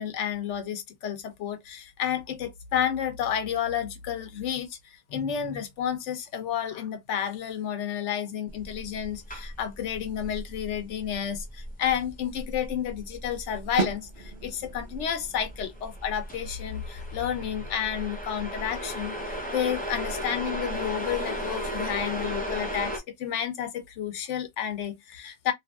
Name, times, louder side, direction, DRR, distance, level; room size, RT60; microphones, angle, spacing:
voice 1, 0.0-25.5, left 9 dB, 90° left, 1.0 m, -31 dB
sound 1, 8.5-23.0, equal, 10° left, 0.5 m, -36 dB
sound 2, 13.8-19.5, right 4 dB, 65° right, 1.2 m, -38 dB
2.8 x 2.5 x 2.3 m
omnidirectional pair, 1.2 m